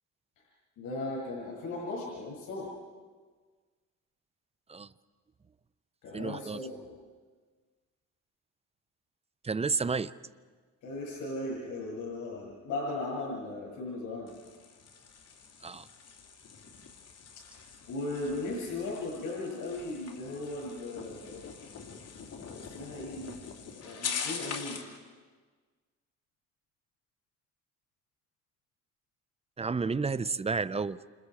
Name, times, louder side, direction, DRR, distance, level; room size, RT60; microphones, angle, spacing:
voice 1, 0.8-2.7 6.0-6.9 10.8-14.3 17.5-17.6 17.9-21.5 22.5-23.4 23.8-24.8, left 2 dB, 80° left, -3 dB, 7.4 m, -37 dB
voice 2, 6.1-6.6 9.4-10.1 15.6-15.9 29.6-31.0, right 4 dB, 20° right, 16 dB, 0.7 m, -31 dB
sound 1, 14.3-25.0, left 6 dB, 55° left, 3.0 m, -43 dB
29.0 x 27.0 x 4.9 m, 1.5 s
cardioid pair, 90°, 30 cm